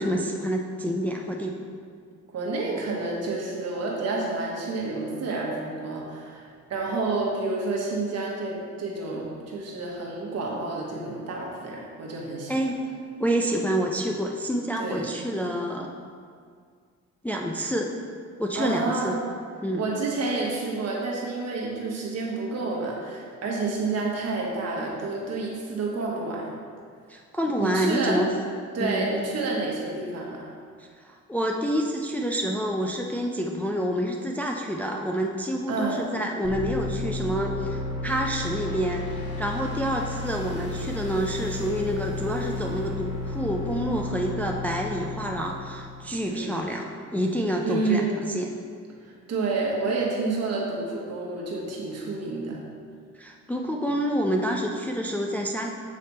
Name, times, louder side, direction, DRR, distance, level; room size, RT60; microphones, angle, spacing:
voice 1, 0.0-1.6 12.5-12.8 13.2-15.9 17.2-17.9 18.4-19.2 19.6-19.8 27.1-28.3 28.8-29.1 31.0-48.5 53.2-55.7, equal, 5° left, 1 dB, 0.4 m, -28 dB
voice 2, 2.3-12.5 14.8-15.1 18.5-19.2 19.8-26.5 27.6-28.2 28.7-30.5 35.7-36.0 46.3-46.6 47.6-48.2 49.0-52.6, right 3 dB, 55° right, -3 dB, 1.4 m, -29 dB
sound 1, 36.4-46.3, left 2 dB, 35° left, 1.3 m, -33 dB
7.4 x 3.2 x 4.2 m, 2.1 s
cardioid pair, 90°, 30 cm